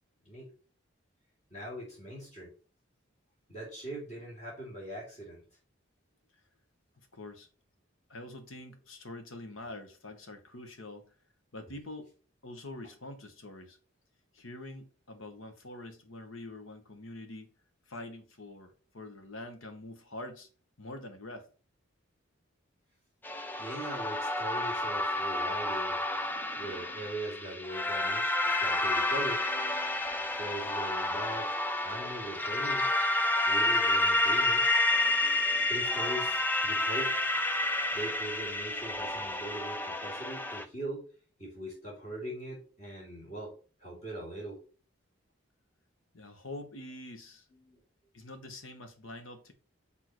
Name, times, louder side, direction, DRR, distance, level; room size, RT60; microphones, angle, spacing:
voice 1, 1.5-2.5 3.5-5.4 23.6-26.3 26.5-29.4 30.3-32.9 33.5-34.6 35.7-37.1 37.9-41.0 41.4-43.5 43.8-44.6 47.5-47.8, right 1 dB, 35° left, 3.3 m, -41 dB
voice 2, 7.1-7.5 8.1-11.1 11.5-12.1 12.4-13.8 14.3-17.5 17.9-20.5 20.8-21.5 46.1-47.5 48.1-49.5, left 2 dB, 80° left, 1.3 m, -45 dB
sound 1, 23.2-40.6, left 2 dB, 10° left, 0.4 m, -30 dB
6.3 x 3.8 x 4.6 m
head